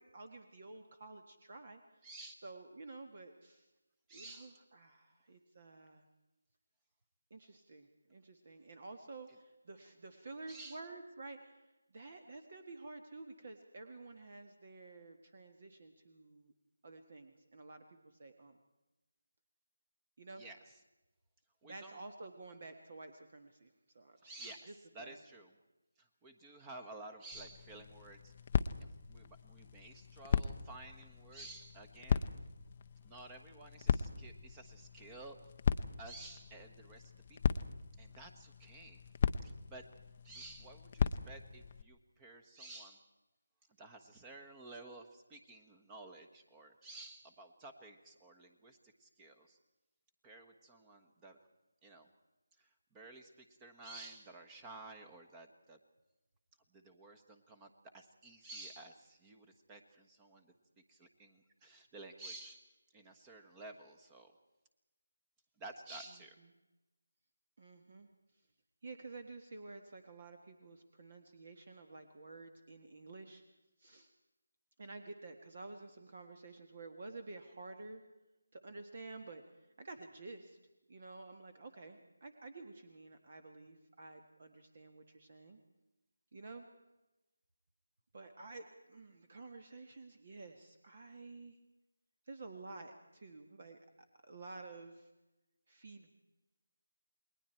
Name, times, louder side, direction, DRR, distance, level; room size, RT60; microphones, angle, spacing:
voice 1, 0.0-1.8 2.4-3.7 4.1-6.0 7.3-16.5 16.8-18.6 20.2-20.4 21.6-25.2 66.4-66.5 67.6-68.1 68.8-73.4 73.8-74.1 74.8-78.0 78.5-80.6 80.9-85.6 86.3-86.6 88.1-91.6 92.2-93.8 94.2-95.1 95.7-96.1, right 3 dB, 45° right, 7 dB, 1.7 m, -51 dB
voice 2, 2.0-2.4 4.1-4.6 10.5-10.8 20.3-20.6 21.6-22.0 24.2-25.5 26.0-28.3 28.8-32.3 33.0-35.4 36.0-37.6 38.0-39.0 39.4-39.8 40.2-43.1 43.8-49.6 50.2-51.4 51.8-52.1 52.6-55.8 56.7-60.5 60.9-64.3 65.6-66.4, right 2 dB, 15° right, 6 dB, 1.3 m, -53 dB
sound 1, 27.3-41.8, left 6 dB, 30° left, 0.7 m, -38 dB
29.0 x 20.5 x 4.5 m, 1.0 s
figure-of-eight pair, 160°, 0 cm